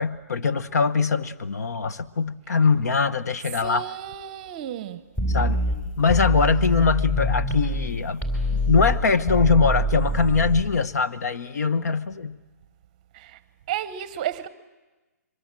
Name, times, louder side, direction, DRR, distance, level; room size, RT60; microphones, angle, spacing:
voice 1, 0.0-3.9 5.3-5.6 6.0-8.3 8.5-12.4, left 5 dB, 70° left, 1.0 m, -22 dB
voice 2, 3.6-5.0 13.1-13.4 13.7-14.5, right 11 dB, 25° right, 0.8 m, -32 dB
sound 1, 5.2-7.9 8.2-10.6, equal, 15° left, 3.5 m, -25 dB
23.5 x 21.0 x 7.5 m
hypercardioid pair, 165°, 9 cm